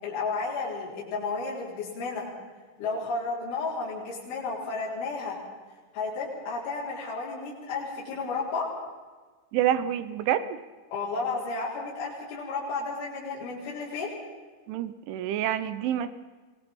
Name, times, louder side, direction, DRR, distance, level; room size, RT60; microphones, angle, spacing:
voice 1, 0.0-2.3 2.8-5.4 5.9-8.7 10.9-14.1, left 4 dB, 80° left, -6 dB, 6.7 m, -32 dB
voice 2, 9.5-10.6 14.7-16.1, right 11 dB, 90° right, 13 dB, 3.6 m, -27 dB
25.0 x 19.5 x 5.5 m, 1.4 s
omnidirectional pair, 5.4 m